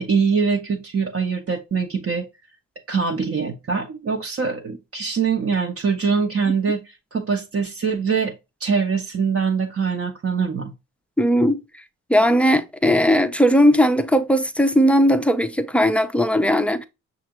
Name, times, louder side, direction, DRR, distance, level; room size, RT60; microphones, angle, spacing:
voice 1, 0.0-2.3 2.9-8.3 8.6-10.7, right 5 dB, 35° right, 0.7 m, -23 dB
voice 2, 11.2-11.6 12.1-16.8, equal, 5° left, 0.5 m, -18 dB
5.8 x 2.5 x 2.9 m
hypercardioid pair, 45°, 39 cm